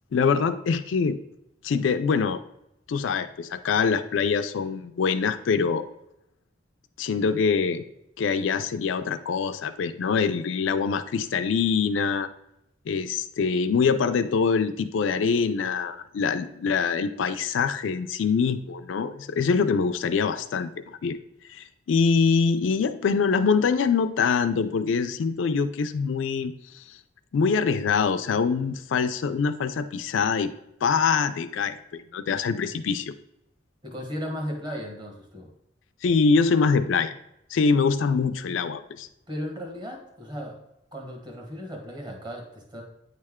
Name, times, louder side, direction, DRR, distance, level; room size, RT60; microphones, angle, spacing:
voice 1, 0.1-1.2 1.6-2.4 2.9-5.9 7.0-7.8 8.2-12.3 12.9-21.2 21.5-26.8 27.3-30.5 30.8-33.1 36.0-37.1 37.5-39.1, left 5 dB, 80° left, 10 dB, 0.4 m, -24 dB
voice 2, 33.8-35.5 39.3-40.6 40.9-42.8, equal, 25° right, 1 dB, 1.3 m, -35 dB
9.0 x 3.3 x 3.5 m, 0.82 s
head